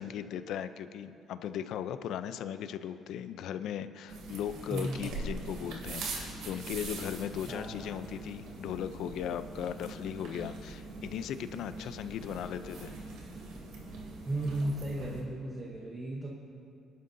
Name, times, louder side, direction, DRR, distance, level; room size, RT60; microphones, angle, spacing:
voice 1, 0.0-12.9, left 9 dB, 60° left, 11 dB, 0.5 m, -37 dB
sound 1, 4.1-15.2, right 3 dB, 80° right, 2.6 m, -42 dB
voice 2, 4.7-5.4 7.5-8.1 14.2-16.4, right 1 dB, 20° right, -2 dB, 0.9 m, -36 dB
27.0 x 11.5 x 2.7 m, 2.5 s
cardioid pair, 180°, 0 cm